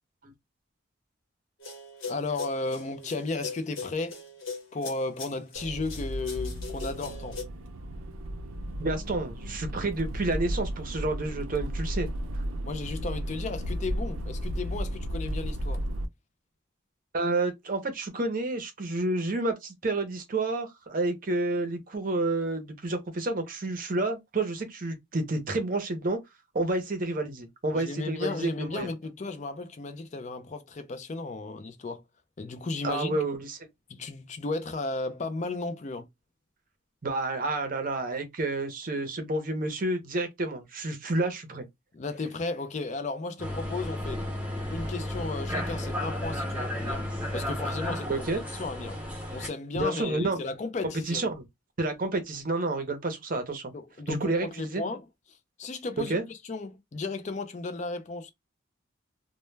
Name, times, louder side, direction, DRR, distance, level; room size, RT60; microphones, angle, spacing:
sound 1, 1.6-7.4, left 4 dB, 80° left, 1.0 m, -40 dB
voice 1, 2.1-4.2 4.7-7.4 12.6-15.9 27.7-32.0 32.4-33.2 33.9-36.1 41.9-44.3 44.7-48.3 48.5-49.0 49.3-51.2 53.7-55.0 55.6-58.3, left 3 dB, 35° left, 0.4 m, -34 dB
Accelerating revving vroom, 5.5-16.1, equal, 90° right, 0.5 m, -34 dB
voice 2, 8.8-12.1 17.1-26.2 26.5-28.9 32.8-33.6 37.0-41.7 48.1-48.4 49.8-50.5 51.1-51.4 51.8-53.7 54.1-54.8 56.1-56.2, right 2 dB, 45° right, 0.6 m, -30 dB
sound 2, 43.4-49.5, left 1 dB, 10° right, 0.7 m, -33 dB
2.1 x 2.1 x 3.1 m
head